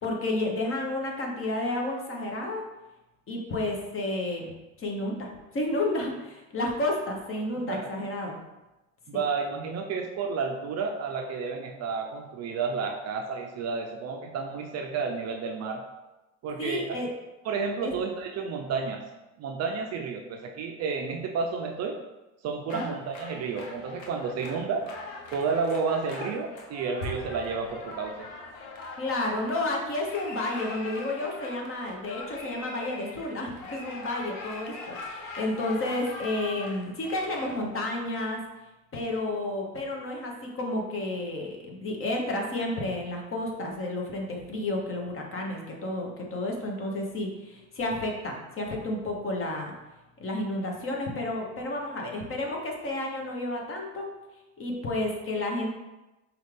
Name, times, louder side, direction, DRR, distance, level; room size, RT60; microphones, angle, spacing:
voice 1, 0.0-2.6 3.3-8.3 9.1-9.2 16.6-17.1 17.8-17.9 22.7-22.9 29.0-38.4 38.9-49.7 50.2-54.1 54.6-55.7, left 2 dB, 35° left, 0 dB, 1.0 m, -31 dB
voice 2, 9.1-15.8 16.4-17.0 17.4-19.0 19.4-22.0 22.4-24.9 25.3-28.3, right 5 dB, 40° right, 3 dB, 0.5 m, -31 dB
sound 1, 22.7-37.5, left 2 dB, 85° left, 0.9 m, -41 dB
5.2 x 2.4 x 3.3 m, 1.0 s
supercardioid pair, 100°, 39 cm